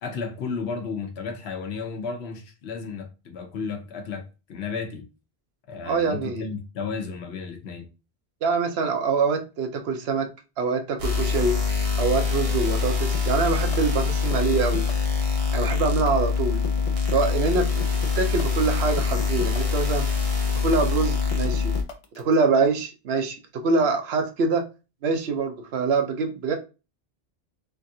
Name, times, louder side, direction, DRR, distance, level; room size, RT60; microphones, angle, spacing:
voice 1, 0.0-5.0 5.7-7.9, left 5 dB, 90° left, 1.0 m, -33 dB
voice 2, 5.8-6.5 8.4-10.3 10.6-11.6 12.0-14.9 15.5-16.6 17.1-17.7 18.2-20.1 20.6-21.7 22.2-24.7 25.0-26.5, right 4 dB, 85° right, 0.9 m, -24 dB
sound 1, 11.0-21.8, left 5 dB, 40° right, 0.6 m, -24 dB
sound 2, 13.1-22.3, left 6 dB, 50° left, 0.4 m, -37 dB
3.5 x 2.4 x 2.6 m
omnidirectional pair, 1.0 m